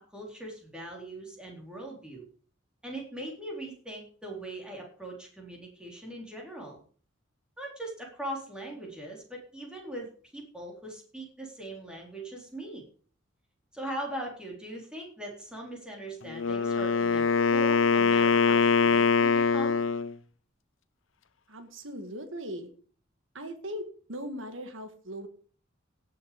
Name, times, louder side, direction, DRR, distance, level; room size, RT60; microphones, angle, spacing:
voice 1, 0.1-2.3 2.8-6.8 7.6-12.8 13.7-19.8, right 1 dB, 5° right, -1 dB, 4.1 m, -40 dB
Wind instrument woodwind instrument, 16.3-20.1, left 5 dB, 70° left, 0.8 m, -23 dB
voice 2, 21.5-22.7 23.3-25.3, equal, 70° right, 7 dB, 1.9 m, -39 dB
17.5 x 6.8 x 5.3 m, 0.44 s
head